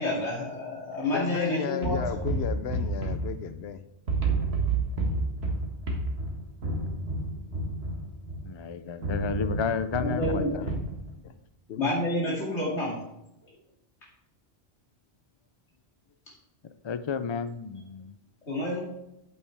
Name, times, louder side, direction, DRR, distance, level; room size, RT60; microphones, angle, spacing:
voice 1, 0.0-2.0 10.0-10.5 11.8-13.0 18.5-18.8, left 1 dB, 85° left, -5 dB, 2.7 m, -29 dB
voice 2, 1.1-3.8 10.5-10.8 11.2-11.3 11.7-11.9, left 8 dB, 70° left, 12 dB, 0.9 m, -34 dB
sound 1, 1.8-3.8 4.1-8.5 9.0-11.0, right 2 dB, 65° right, 1.9 m, -30 dB
voice 3, 8.5-10.4 16.8-18.2, left 6 dB, 50° left, 12 dB, 0.3 m, -31 dB
9.0 x 8.6 x 3.4 m, 0.86 s
omnidirectional pair, 1.1 m